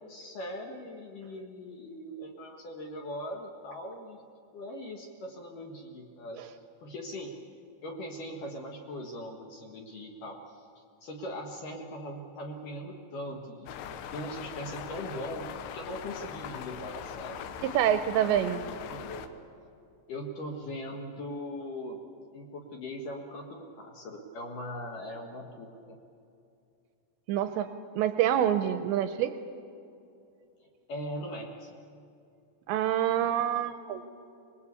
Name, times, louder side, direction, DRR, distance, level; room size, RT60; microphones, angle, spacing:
voice 1, 0.1-4.2 4.5-6.4 6.8-7.3 7.8-10.7 11.0-17.6 18.2-19.2 20.1-22.0 22.3-26.0 30.9-31.7, equal, 55° left, 2 dB, 2.6 m, -40 dB
sound 1, 13.7-19.3, left 8 dB, 80° left, 3.4 m, -41 dB
voice 2, 17.6-18.6 27.3-27.7 28.0-29.3 32.7-34.0, right 10 dB, 80° right, 9 dB, 2.7 m, -26 dB
24.5 x 21.0 x 8.4 m, 2.6 s
omnidirectional pair, 5.6 m